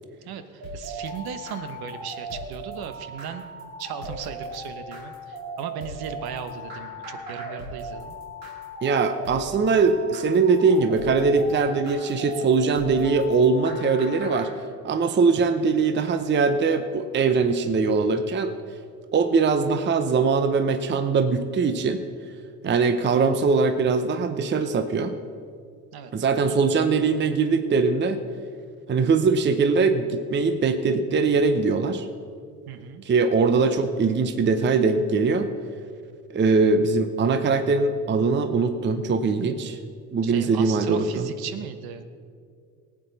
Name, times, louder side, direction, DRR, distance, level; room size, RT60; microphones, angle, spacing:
voice 1, 0.2-3.4 3.8-8.2 22.6-23.0 25.9-26.3 32.7-33.0 40.2-42.0, right 8 dB, 50° right, 10 dB, 1.1 m, -37 dB
sound 1, 0.6-14.5, right 1 dB, 80° right, 2.5 m, -37 dB
voice 2, 8.8-14.5 14.8-18.5 19.1-22.0 22.6-25.2 26.1-28.2 28.9-32.1 33.0-35.5 36.3-39.8 40.1-41.3, right 4 dB, 25° right, 10 dB, 0.7 m, -21 dB
18.5 x 9.1 x 4.1 m, 2.2 s
hypercardioid pair, 65°, 47 cm